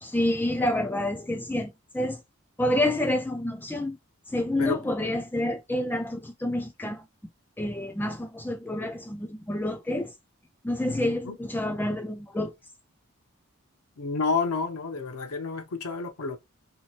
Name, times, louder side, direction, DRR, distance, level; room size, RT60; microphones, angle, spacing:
voice 1, 0.0-2.2 2.6-4.0 4.3-7.0 7.6-10.1 10.6-12.5, left 1 dB, 10° left, 0.4 m, -28 dB
voice 2, 10.8-11.4 14.0-16.4, left 4 dB, 90° left, 0.7 m, -30 dB
2.8 x 2.6 x 2.8 m
head